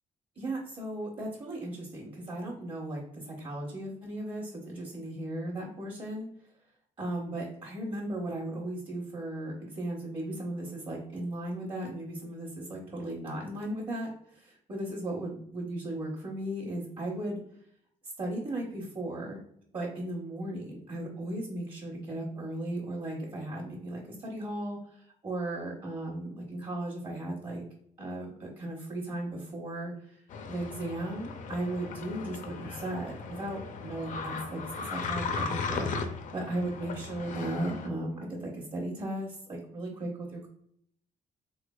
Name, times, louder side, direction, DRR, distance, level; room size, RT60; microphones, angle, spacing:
voice 1, 0.4-6.3 7.0-17.4 18.2-19.4 19.7-27.6 28.0-30.2 30.5-40.5, right 1 dB, 40° right, -4 dB, 0.9 m, -36 dB
sound 1, 30.3-37.9, left 4 dB, 60° left, 0.5 m, -37 dB
3.6 x 3.2 x 2.2 m, 0.67 s
cardioid pair, 140°, 15 cm